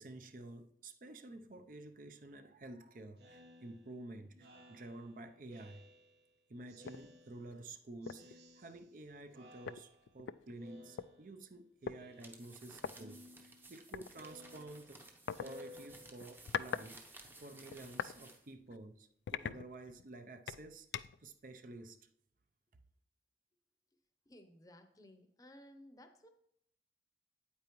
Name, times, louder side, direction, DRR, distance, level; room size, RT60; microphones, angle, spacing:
voice 1, 0.0-5.8 6.5-15.0 15.4-20.9 21.2-22.0, right 2 dB, 50° right, 0.5 m, -51 dB
Speech synthesizer, 3.2-6.3 6.7-7.7 8.0-9.0 9.3-10.2 10.6-11.5 11.8-12.6 12.9-16.5, left 1 dB, 70° right, 1.2 m, -58 dB
sound 1, 6.8-7.1 7.5-7.6 8.1-8.3 9.3-9.4 9.7-11.1 11.9-12.0 12.8-12.9 13.9-14.1 15.3-15.5 16.2-16.9 17.2-18.2 18.6-18.8 19.3-20.1 20.5-21.3, left 7 dB, 80° left, 0.3 m, -42 dB
sound 2, 12.1-18.5, right 2 dB, 10° right, 0.7 m, -57 dB
voice 2, 24.3-26.3, left 1 dB, 20° left, 0.7 m, -58 dB
9.2 x 8.5 x 3.0 m
head